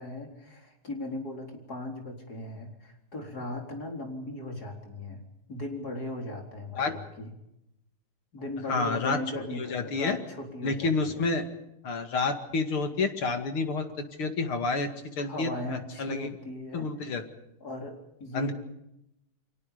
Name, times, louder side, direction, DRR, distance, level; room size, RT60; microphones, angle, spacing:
voice 1, 0.0-5.2 5.5-7.3 8.3-11.3 15.2-16.9 17.6-18.5, left 1 dB, 45° left, 2 dB, 4.6 m, -38 dB
voice 2, 8.7-9.2 9.6-10.2 10.6-11.4 11.8-13.9 14.2-14.9 15.2-16.3 16.7-17.2 18.3-18.5, left 3 dB, 75° left, 7 dB, 3.1 m, -29 dB
30.0 x 23.5 x 5.2 m, 0.83 s
omnidirectional pair, 2.3 m